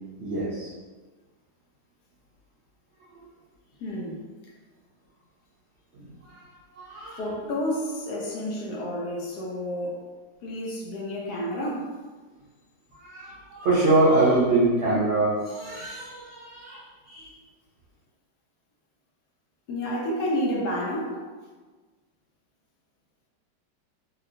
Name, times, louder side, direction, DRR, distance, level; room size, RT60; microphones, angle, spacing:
voice 1, 0.2-0.7 6.3-6.4 6.8-7.2 13.0-17.3, right 2 dB, 70° right, -8 dB, 0.6 m, -24 dB
voice 2, 3.8-4.2 7.2-10.1 10.4-11.9 19.7-21.2, equal, 70° left, -2 dB, 1.1 m, -30 dB
3.0 x 2.8 x 2.5 m, 1.4 s
omnidirectional pair, 1.9 m